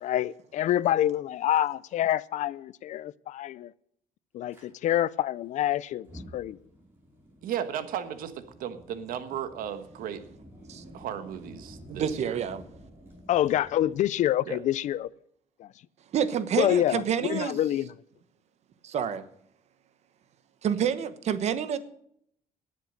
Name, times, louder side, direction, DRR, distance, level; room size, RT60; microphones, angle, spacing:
voice 1, 0.0-3.7 4.3-6.1 6.3-6.6 13.3-15.1 15.6-15.7 16.6-17.0 17.3-17.9, left 12 dB, 60° left, 0.4 m, -26 dB
Fire, 4.5-4.6 5.9-15.0, equal, 15° right, 5.2 m, -51 dB
voice 2, 7.4-10.2 10.9-12.4 14.5-14.6, right 9 dB, 80° right, 1.4 m, -35 dB
voice 3, 11.9-12.6 16.1-17.6 18.8-19.2 20.6-21.8, right 8 dB, 50° right, 1.1 m, -28 dB
18.5 x 7.6 x 6.5 m
cardioid pair, 165°, 14 cm